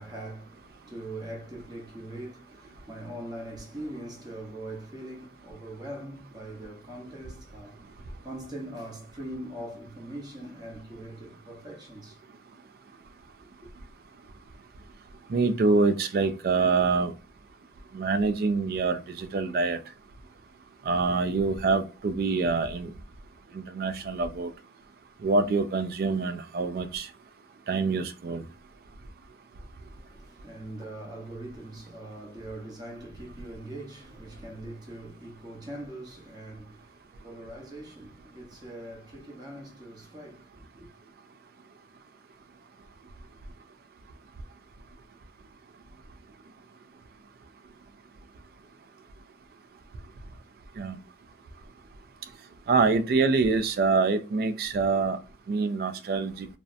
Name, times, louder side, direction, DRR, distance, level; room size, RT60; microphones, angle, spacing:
voice 1, 0.0-12.2 29.8-40.9, right 1 dB, 25° right, 0.8 m, -42 dB
voice 2, 15.3-17.1 17.9-19.8 20.9-22.9 23.5-24.5 25.2-27.1 27.7-28.4 50.8-51.0 52.7-55.2 55.5-56.5, right 4 dB, 55° right, 0.3 m, -25 dB
2.6 x 2.0 x 2.5 m
head